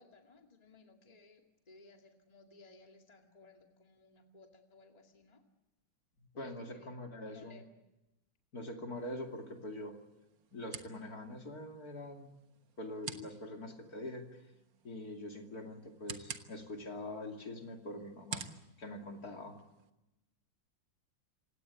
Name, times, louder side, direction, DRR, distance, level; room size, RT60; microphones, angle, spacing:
voice 1, 0.0-5.4 6.3-6.9 7.2-7.7, left 3 dB, 20° left, 3 dB, 2.2 m, -59 dB
voice 2, 6.2-7.6 8.5-10.0 10.5-12.3 12.8-14.2 14.8-18.5 18.8-19.6, left 1 dB, 50° left, 3 dB, 3.0 m, -44 dB
sound 1, 8.9-19.9, right 6 dB, 70° right, 2.0 m, -51 dB
27.5 x 17.5 x 8.3 m, 0.96 s
omnidirectional pair, 2.1 m